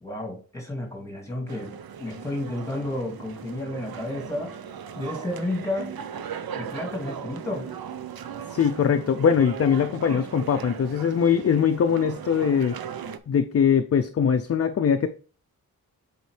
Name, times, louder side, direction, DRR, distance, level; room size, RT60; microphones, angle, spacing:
voice 1, 0.0-4.5 5.0-6.0 6.5-7.7 10.1-10.3, left 1 dB, 10° left, 2.0 m, -32 dB
sound 1, 1.5-13.2, right 7 dB, 75° right, 0.6 m, -38 dB
voice 2, 8.5-12.8 13.3-15.1, left 7 dB, 45° left, 0.4 m, -22 dB
8.2 x 4.2 x 3.3 m
wide cardioid pair, 170°, 36 cm